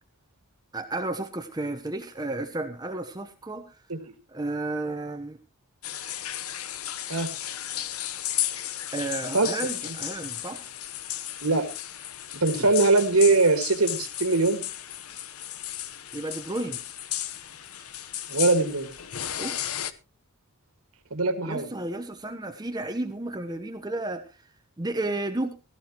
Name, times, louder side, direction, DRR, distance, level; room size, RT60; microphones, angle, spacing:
voice 1, 0.7-3.8 4.3-5.4 8.9-10.7 12.5-12.7 16.1-16.8 19.4-19.7 21.5-25.5, right 2 dB, 20° right, 6 dB, 1.0 m, -32 dB
sound 1, 5.8-19.9, left 12 dB, 75° left, 1.1 m, -34 dB
voice 2, 12.3-14.6 18.3-18.9 21.1-21.7, right 3 dB, 75° right, 7 dB, 2.0 m, -22 dB
16.5 x 14.5 x 3.0 m, 0.30 s
head